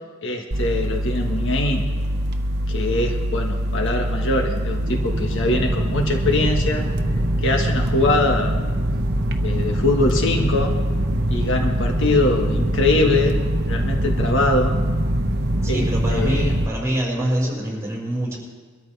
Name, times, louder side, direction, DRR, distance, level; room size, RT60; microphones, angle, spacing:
voice 1, 0.2-1.9 2.7-6.9 7.4-8.6 9.4-10.7 11.3-13.4 13.7-14.8 15.7-16.5, left 2 dB, 60° left, 2 dB, 1.6 m, -22 dB
sound 1, 0.5-16.7, right 1 dB, 50° right, 1.0 m, -23 dB
voice 2, 15.6-18.4, right 1 dB, 15° right, -3 dB, 5.4 m, -25 dB
23.5 x 13.5 x 3.4 m, 1.5 s
head